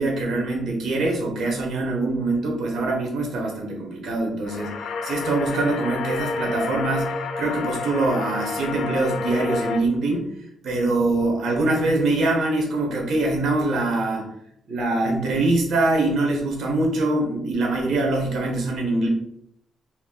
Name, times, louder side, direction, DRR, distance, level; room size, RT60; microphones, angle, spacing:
voice 1, 0.0-10.3 10.6-14.3 14.7-19.1, right 2 dB, 65° right, 0 dB, 1.0 m, -23 dB
sound 1, 4.5-9.8, left 4 dB, 75° left, 0.4 m, -29 dB
2.9 x 2.5 x 3.7 m, 0.72 s
cardioid pair, 95°, 0 cm